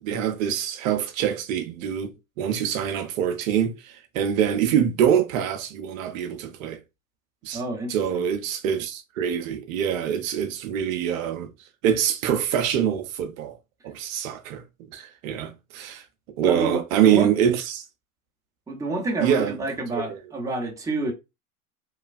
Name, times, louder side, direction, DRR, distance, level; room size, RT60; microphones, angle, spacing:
voice 1, 0.0-6.8 7.4-7.6 7.9-11.5 11.8-13.6 13.8-14.6 14.9-16.0 16.4-17.8 19.2-19.6 19.9-20.2, right 9 dB, 60° right, 0.7 m, -25 dB
voice 2, 7.5-8.2 16.4-17.3 18.7-21.1, right 2 dB, 5° right, 0.8 m, -29 dB
3.0 x 2.3 x 2.4 m
hypercardioid pair, 85°, 45 cm